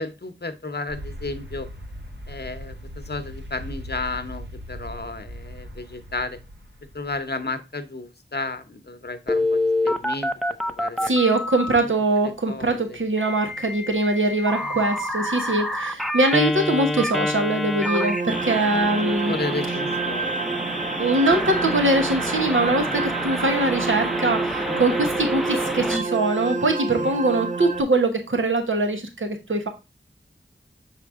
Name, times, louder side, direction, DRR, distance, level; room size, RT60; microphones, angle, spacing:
voice 1, 0.0-1.7 2.3-6.4 6.9-10.3 10.7-11.1 11.8-11.9 12.2-13.0 14.5-14.8 15.4-15.6 19.3-20.5 24.7-24.9 26.9-27.2, left 3 dB, 55° left, 9 dB, 0.9 m, -33 dB
sound 1, 0.9-7.4, equal, 60° right, 1.3 m, -39 dB
Telephone, 9.3-11.8 13.2-26.0, left 1 dB, ahead, 0.7 m, -28 dB
voice 2, 11.0-19.3 21.0-29.7, right 2 dB, 80° right, 4 dB, 1.1 m, -22 dB
sound 2, 17.8-27.8, right 4 dB, 40° right, 0.5 m, -28 dB
6.5 x 4.3 x 3.6 m, 0.26 s
wide cardioid pair, 45°, 20 cm